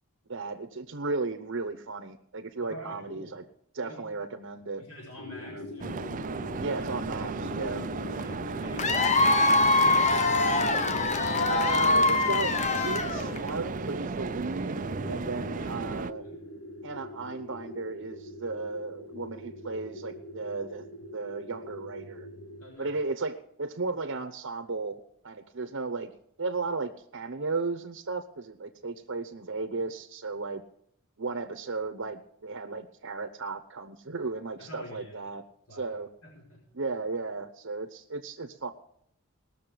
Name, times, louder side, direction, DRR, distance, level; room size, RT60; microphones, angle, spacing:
voice 1, 0.3-3.4 3.7-4.8 5.5-5.6 6.6-7.8 11.5-16.2 16.8-22.3 22.8-26.1 26.4-30.6 31.2-35.4 35.7-36.1 36.7-38.7, right 3 dB, 60° right, 7 dB, 0.9 m, -35 dB
voice 2, 2.6-3.3 3.8-4.1 4.8-6.0 7.5-7.8 8.1-11.0 15.4-15.8 16.2-16.4 22.6-23.0 34.6-35.1 35.7-36.0 36.2-36.6, left 1 dB, 80° left, -3 dB, 5.2 m, -46 dB
sound 1, 5.2-22.7, left 2 dB, 60° left, 1.1 m, -42 dB
sound 2, 5.8-16.1, right 4 dB, 35° right, 0.4 m, -35 dB
Cheering / Applause / Crowd, 8.8-13.5, left 3 dB, 30° left, 0.8 m, -24 dB
19.5 x 6.7 x 6.8 m, 0.70 s
head